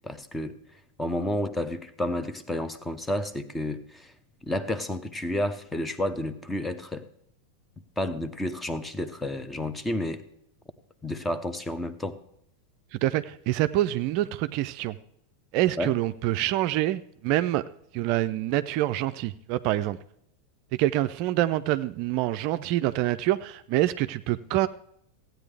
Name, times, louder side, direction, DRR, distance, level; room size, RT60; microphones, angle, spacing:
voice 1, 0.0-0.5 1.0-4.1 4.4-7.1 8.0-10.2 11.0-12.2 15.8-15.9, left 1 dB, 10° left, 12 dB, 0.8 m, -30 dB
voice 2, 12.9-15.0 15.5-17.6 17.9-20.0 20.7-24.7, right 15 dB, 50° right, 12 dB, 0.4 m, -26 dB
15.0 x 9.1 x 3.3 m, 0.72 s
figure-of-eight pair, 90°, 0 cm